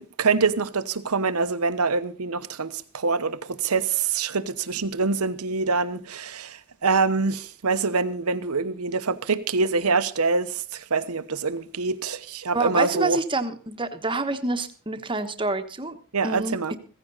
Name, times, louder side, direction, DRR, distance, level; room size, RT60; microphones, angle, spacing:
voice 1, 0.0-13.2 16.1-16.7, right 4 dB, 85° right, 1.0 m, -25 dB
voice 2, 12.5-16.0 16.2-16.8, right 3 dB, 20° right, 1.2 m, -27 dB
16.0 x 15.0 x 4.0 m
head